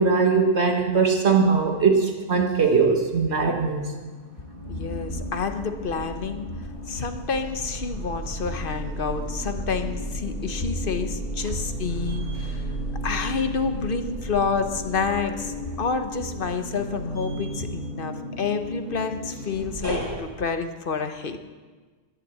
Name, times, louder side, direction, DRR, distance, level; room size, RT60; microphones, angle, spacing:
voice 1, 0.0-3.9, right 5 dB, 65° right, 3 dB, 1.6 m, -20 dB
sound 1, 3.1-3.9 4.2-20.1, right 1 dB, 85° right, 4.4 m, -33 dB
voice 2, 4.7-6.5 6.9-12.7 13.0-21.4, left 5 dB, 50° left, 7 dB, 1.1 m, -29 dB
11.5 x 11.0 x 7.6 m, 1.4 s
omnidirectional pair, 1.2 m